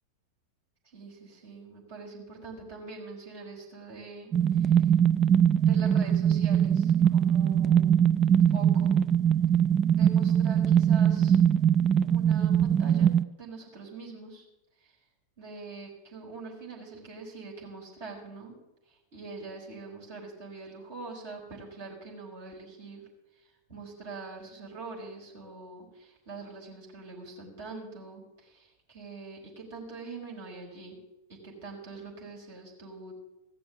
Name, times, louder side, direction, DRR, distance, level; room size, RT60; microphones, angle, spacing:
voice 1, 0.8-4.9 5.6-8.0 8.5-9.0 9.9-11.4 12.0-13.1 13.4-14.5 14.8-15.0 15.4-18.6 18.9-31.0 31.3-33.1, right 3 dB, 55° right, -2 dB, 5.4 m, -44 dB
sound 1, 4.3-13.2, right 9 dB, 25° right, 0.4 m, -22 dB
16.0 x 6.9 x 8.3 m, 0.95 s
figure-of-eight pair, 90°, 0 cm